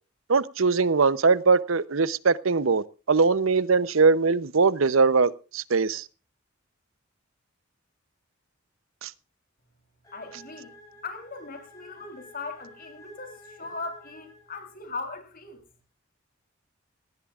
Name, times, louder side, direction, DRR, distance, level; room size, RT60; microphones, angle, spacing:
voice 1, 0.3-6.0 9.0-9.1, right 4 dB, 80° right, 0.8 m, -21 dB
sound 1, 10.0-14.9, left 1 dB, 15° left, 6.8 m, -51 dB
voice 2, 10.1-10.7 11.0-15.6, left 3 dB, 45° left, 3.7 m, -39 dB
18.5 x 17.5 x 2.5 m
head